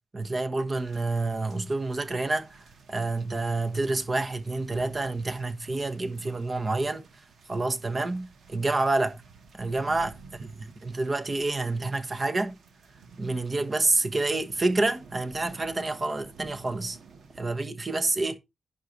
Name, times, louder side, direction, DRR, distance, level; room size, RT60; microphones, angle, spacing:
voice 1, 0.1-7.1 7.5-9.2 9.5-12.6 13.2-17.0 17.4-18.4, right 2 dB, 35° right, 1.2 m, -28 dB
sound 1, 0.8-17.4, right 4 dB, 85° right, 1.9 m, -52 dB
10.5 x 5.5 x 4.6 m
cardioid pair, 95°, 0 cm